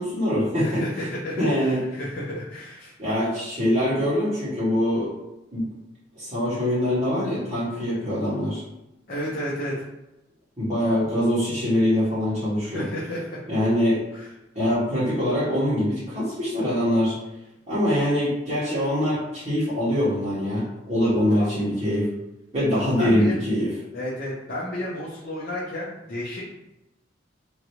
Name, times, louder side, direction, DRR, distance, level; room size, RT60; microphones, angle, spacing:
voice 1, 0.0-1.1 1.4-1.8 3.0-5.1 5.5-5.6 6.2-8.6 10.6-12.9 13.5-14.0 14.5-17.2 17.7-22.1 22.5-23.7, equal, 35° right, -11 dB, 1.0 m, -23 dB
voice 2, 0.6-2.9 9.1-9.8 12.7-13.4 14.1-14.3 21.3-21.5 23.0-23.4 23.9-26.4, left 1 dB, 50° left, -7 dB, 0.7 m, -32 dB
3.1 x 2.5 x 2.9 m, 0.93 s
head